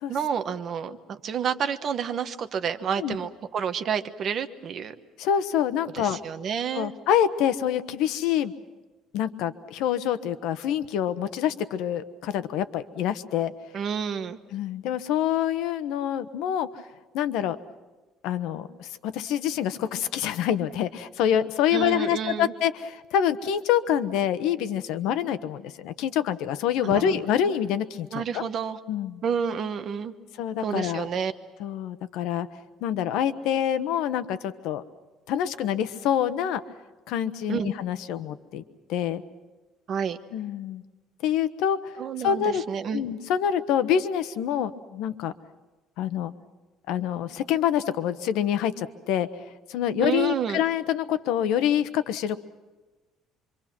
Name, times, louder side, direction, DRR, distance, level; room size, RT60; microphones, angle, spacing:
voice 1, 0.1-4.9 5.9-6.9 13.7-14.4 21.7-22.5 26.8-27.2 28.1-28.8 29.2-30.1 30.6-31.3 37.5-37.7 39.9-40.2 42.0-43.0 50.0-50.6, right 7 dB, 40° right, 9 dB, 1.1 m, -29 dB
voice 2, 5.2-6.2 6.7-8.5 9.1-13.5 14.5-16.7 17.1-17.6 18.2-28.1 28.3-28.4 28.9-29.2 30.4-31.1 31.6-32.5 32.8-34.8 35.3-36.6 37.1-38.6 38.9-39.2 40.3-40.8 41.2-41.8 42.2-42.6 42.9-45.3 46.0-46.3 46.9-49.3 49.7-52.4, left 9 dB, 75° left, 12 dB, 1.1 m, -26 dB
26.0 x 25.0 x 6.1 m, 1.2 s
cardioid pair, 160°, 0 cm